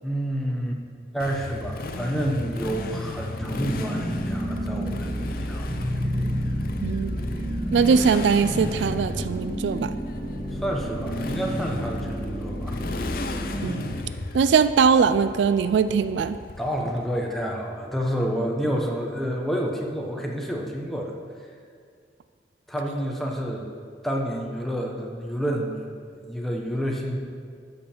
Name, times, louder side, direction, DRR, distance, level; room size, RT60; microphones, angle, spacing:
voice 1, 0.0-0.8 1.1-5.7 10.5-12.7 16.6-21.1 22.7-23.7 24.0-27.2, equal, ahead, -1 dB, 0.9 m, -29 dB
Motorcycle, 1.2-17.0, left 2 dB, 50° left, 0.5 m, -35 dB
sound 1, 3.3-14.0, equal, 50° right, 1.9 m, -31 dB
voice 2, 6.8-7.2 7.7-9.9 13.6-13.9 14.3-16.4, right 6 dB, 75° right, 12 dB, 0.3 m, -21 dB
13.0 x 5.2 x 4.4 m, 2.2 s
head